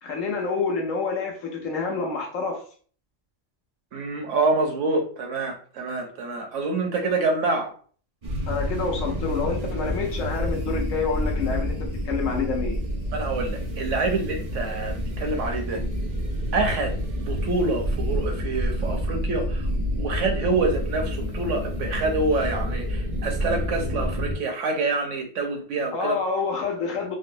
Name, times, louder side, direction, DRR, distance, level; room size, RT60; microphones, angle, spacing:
voice 1, 0.0-2.6 8.5-12.8 25.9-27.2, left 4 dB, 90° left, 1.2 m, -28 dB
voice 2, 3.9-7.7 13.1-15.8 16.5-19.7 20.0-26.1, right 3 dB, 75° right, 1.1 m, -26 dB
sound 1, 8.2-24.4, equal, 40° right, 0.7 m, -28 dB
3.8 x 2.1 x 2.5 m
omnidirectional pair, 1.3 m